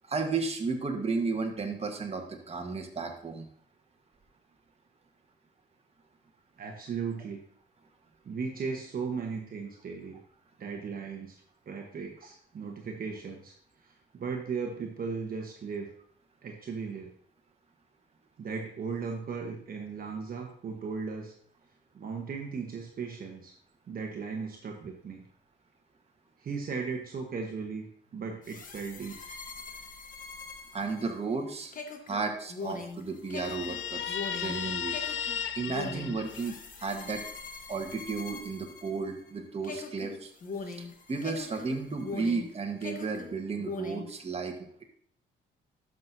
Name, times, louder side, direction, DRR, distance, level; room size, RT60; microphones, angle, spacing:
voice 1, 0.1-3.5 27.3-27.4 30.7-31.7 32.1-35.2 35.5-36.5 36.8-37.2 37.7-40.3 40.7-44.5, right 4 dB, 30° right, 3 dB, 1.4 m, -33 dB
voice 2, 6.6-7.4 8.2-10.2 10.6-13.5 13.8-15.9 16.4-17.1 18.4-21.3 21.9-23.5 23.9-25.3 26.4-29.2, right 5 dB, 45° right, 2 dB, 1.1 m, -37 dB
sound 1, 28.4-39.3 39.6-42.5 42.8-44.1, left 4 dB, 40° left, 1.2 m, -42 dB
Guitar, 33.3-36.9, left 9 dB, 70° left, 0.6 m, -35 dB
12.0 x 6.0 x 2.7 m, 0.62 s
cardioid pair, 90°, 20 cm